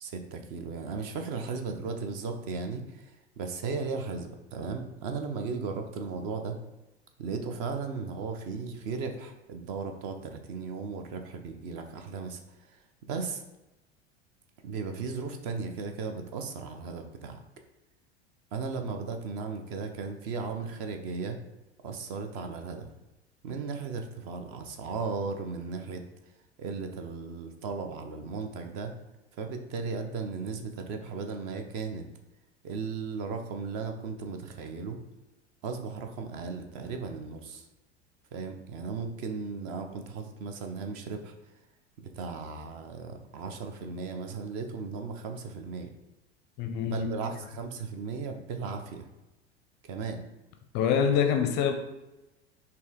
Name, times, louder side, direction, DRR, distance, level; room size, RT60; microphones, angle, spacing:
voice 1, 0.0-3.1 3.4-6.6 7.2-12.4 13.1-13.4 14.6-17.4 18.5-21.4 21.8-22.9 23.4-26.0 26.6-28.9 29.4-32.0 32.6-35.0 35.6-37.6 38.3-41.3 42.0-45.9 46.8-49.1 49.8-50.2, right 4 dB, 40° right, 5 dB, 0.6 m, -36 dB
voice 2, 46.6-47.1 50.7-51.8, left 7 dB, 35° left, 6 dB, 0.5 m, -25 dB
4.2 x 2.8 x 3.6 m, 1.0 s
figure-of-eight pair, 80°, 33 cm